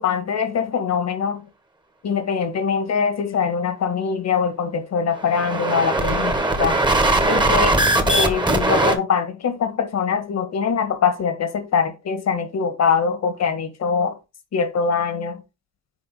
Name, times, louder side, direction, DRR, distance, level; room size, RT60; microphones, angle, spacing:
voice 1, 0.0-1.5 2.0-6.8 7.3-7.8 8.1-14.2 14.5-15.4, left 6 dB, 55° left, 1.7 m, -23 dB
sound 1, 5.2-8.9, right 2 dB, 15° right, 1.4 m, -19 dB
6.7 x 4.7 x 4.3 m
cardioid pair, 125°, 31 cm